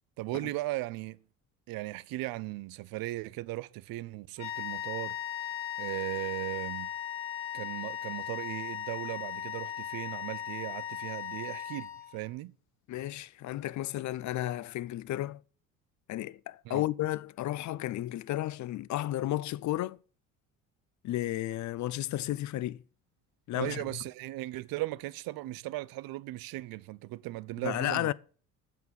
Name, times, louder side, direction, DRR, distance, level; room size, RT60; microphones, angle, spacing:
voice 1, 0.2-1.2 1.7-5.2 5.8-6.9 7.5-12.5 16.6-16.8 23.5-28.1, right 18 dB, 55° right, 0.7 m, -37 dB
sound 1, 4.4-12.3, left 10 dB, 70° left, 1.8 m, -37 dB
voice 2, 12.9-15.4 16.1-20.0 21.0-22.8 23.5-23.8 27.6-28.1, left 14 dB, 45° left, 0.6 m, -33 dB
8.1 x 7.3 x 8.6 m
hypercardioid pair, 60°, 42 cm